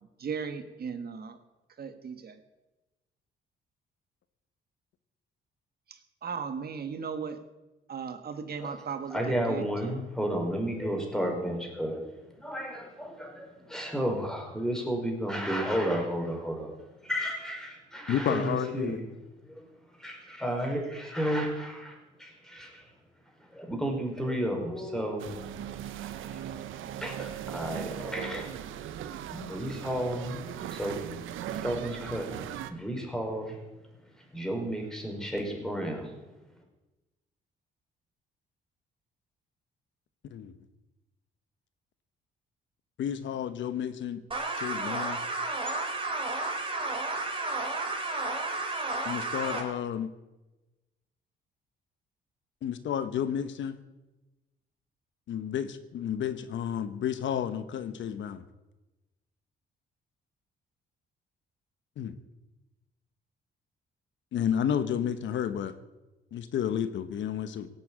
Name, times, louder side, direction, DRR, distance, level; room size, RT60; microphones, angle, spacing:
voice 1, 0.2-1.4 1.8-2.4 5.9-7.4 7.9-10.0, right 6 dB, 50° right, 8 dB, 1.6 m, -37 dB
voice 2, 9.1-12.0 12.4-16.7 17.0-19.0 19.5-19.7 20.0-22.9 23.5-25.3 26.3-26.4 27.0-28.6 29.3-30.4 30.7-31.0 31.6-32.3 32.7-33.6 34.3-36.2, equal, 5° left, 2 dB, 5.4 m, -32 dB
voice 3, 18.1-19.0 40.3-40.5 43.0-44.2 44.6-45.2 49.0-50.1 52.6-53.8 55.3-58.4 62.0-62.2 64.3-65.7 66.3-67.7, left 9 dB, 70° left, 11 dB, 1.1 m, -31 dB
sound 1, 25.2-32.7, right 10 dB, 80° right, 1.1 m, -38 dB
sound 2, 44.3-49.6, right 2 dB, 25° right, 4.1 m, -32 dB
17.5 x 8.8 x 8.8 m, 1.0 s
cardioid pair, 90°, 20 cm